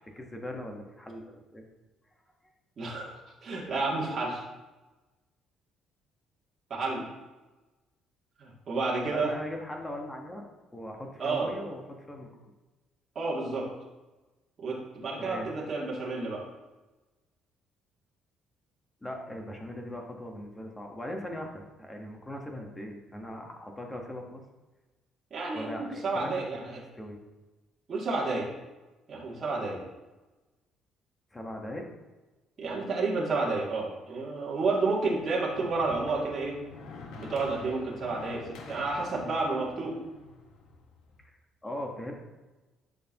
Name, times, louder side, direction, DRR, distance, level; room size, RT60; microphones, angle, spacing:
voice 1, 0.0-1.6 9.1-10.5 10.7-12.3 15.2-15.5 19.0-24.4 25.5-27.2 31.3-31.9 41.2-41.3 41.6-42.1, left 1 dB, 10° left, 1 dB, 1.2 m, -40 dB
voice 2, 2.8-3.1 3.4-4.4 6.7-7.1 8.4-9.3 11.2-11.5 13.1-13.7 14.6-16.4 25.3-26.8 27.9-28.5 29.1-29.8 32.6-36.6 37.2-40.0, right 3 dB, 35° right, -5 dB, 2.4 m, -30 dB
sound 1, 35.1-41.2, left 3 dB, 80° left, 1.4 m, -47 dB
12.5 x 6.5 x 2.9 m, 1.1 s
cardioid pair, 160°, 0 cm